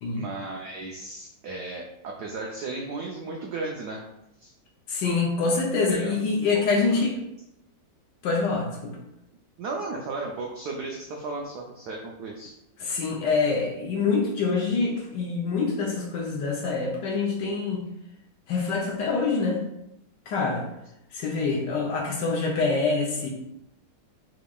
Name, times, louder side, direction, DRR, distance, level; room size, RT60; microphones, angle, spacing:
voice 1, 0.1-4.0 4.4-4.5 5.9-6.1 6.5-6.6 6.9-7.0 9.6-12.5, right 3 dB, 85° right, 0 dB, 0.9 m, -35 dB
voice 2, 4.9-7.2 8.2-9.0 12.8-17.8 18.5-19.6 20.3-20.7 21.1-23.3, left 4 dB, 65° left, -1 dB, 1.2 m, -25 dB
6.0 x 3.0 x 2.3 m, 0.85 s
omnidirectional pair, 2.3 m